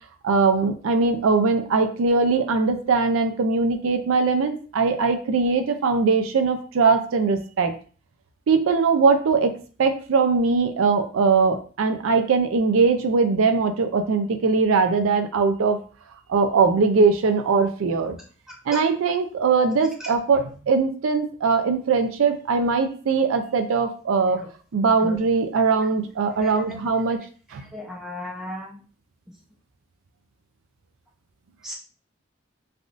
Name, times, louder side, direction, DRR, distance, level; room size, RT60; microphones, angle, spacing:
voice 1, 0.2-7.7 8.5-9.5 9.8-15.8 16.3-18.2 18.7-24.4 24.7-27.2 27.5-27.6, right 4 dB, 90° right, 7 dB, 0.4 m, -21 dB
voice 2, 27.7-28.7 31.6-31.7, left 1 dB, 5° right, -3 dB, 0.6 m, -34 dB
3.4 x 2.5 x 2.4 m, 0.40 s
head